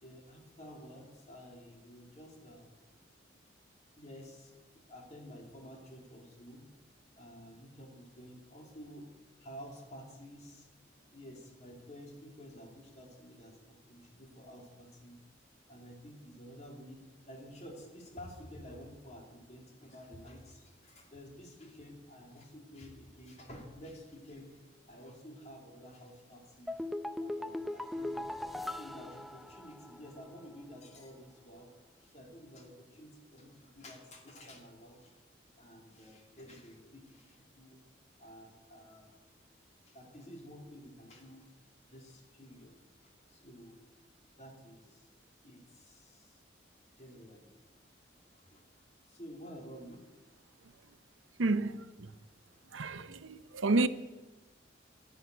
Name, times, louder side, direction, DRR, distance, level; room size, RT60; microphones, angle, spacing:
voice 1, 0.0-2.7 3.9-6.6 7.1-9.1 9.4-10.7 11.1-15.2 15.7-26.9 27.2-28.3 28.6-31.7 32.0-35.1 35.6-37.8 38.2-39.2 39.9-41.5 41.9-43.8 44.4-45.1 45.4-46.4 46.9-47.6 48.3-48.6 49.1-50.0, equal, 35° left, 2.8 m, -51 dB
sound 1, 26.7-30.1 30.4-30.5, left 1 dB, ahead, 0.5 m, -39 dB
voice 2, 51.4-52.1 52.7-53.9, right 3 dB, 90° right, 0.7 m, -30 dB
11.5 x 11.0 x 9.4 m
head